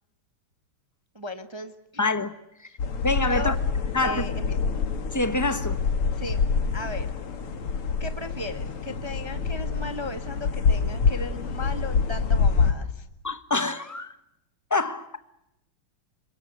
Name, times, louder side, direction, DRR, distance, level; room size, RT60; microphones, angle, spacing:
voice 1, 1.1-2.1 3.3-3.5 4.0-4.6 6.2-6.5 6.7-7.1 8.0-13.1, left 2 dB, 15° right, 1.0 m, -36 dB
voice 2, 2.0-2.3 3.0-3.5 3.9-4.3 5.1-5.8 13.2-14.1 14.7-15.1, left 2 dB, 15° left, 0.8 m, -25 dB
sound 1, 2.8-12.7, left 5 dB, 85° left, 2.8 m, -26 dB
26.5 x 23.5 x 7.9 m
omnidirectional pair, 2.4 m